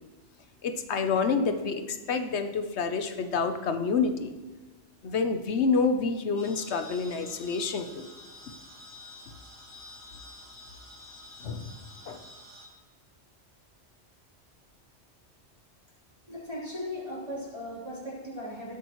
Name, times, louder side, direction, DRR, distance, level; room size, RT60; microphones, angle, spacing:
voice 1, 0.6-4.3 5.0-8.0 11.4-11.7 12.1-12.2, left 5 dB, 70° left, 8 dB, 1.2 m, -28 dB
sound 1, 6.4-12.7, left 1 dB, 15° right, 2.5 m, -49 dB
voice 2, 16.3-18.8, left 1 dB, 30° right, -7 dB, 4.1 m, -37 dB
17.0 x 8.5 x 3.2 m, 1.3 s
omnidirectional pair, 1.2 m